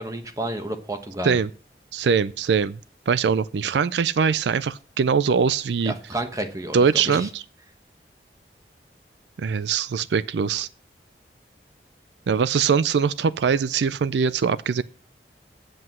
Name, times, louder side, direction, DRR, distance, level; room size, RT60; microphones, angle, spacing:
voice 1, 0.0-1.4 5.8-7.3, right 1 dB, 20° right, 1.2 m, -31 dB
voice 2, 1.9-2.8 3.1-5.9 6.7-7.4 9.4-10.7 12.3-14.8, right 6 dB, 80° right, 0.4 m, -22 dB
7.9 x 7.7 x 7.4 m
head